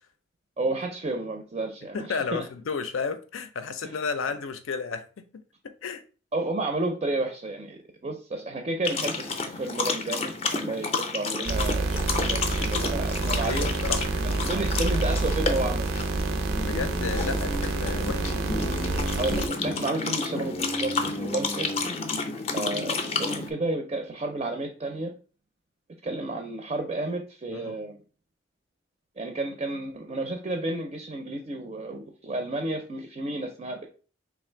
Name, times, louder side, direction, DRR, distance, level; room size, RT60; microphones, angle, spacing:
voice 1, 0.6-2.5 3.8-3.9 6.3-13.7 14.5-15.9 19.2-21.7 22.5-25.1 26.0-28.0 29.2-33.9, right 2 dB, 30° right, 0.4 m, -31 dB
voice 2, 1.9-6.0 12.0-12.1 12.8-12.9 13.4-14.4 16.6-18.4 27.5-27.8, left 5 dB, 90° left, 0.5 m, -33 dB
sound 1, 8.8-23.5, left 4 dB, 30° left, 0.4 m, -31 dB
sound 2, 11.5-19.5, right 3 dB, 85° right, 0.6 m, -28 dB
3.3 x 2.4 x 4.4 m
head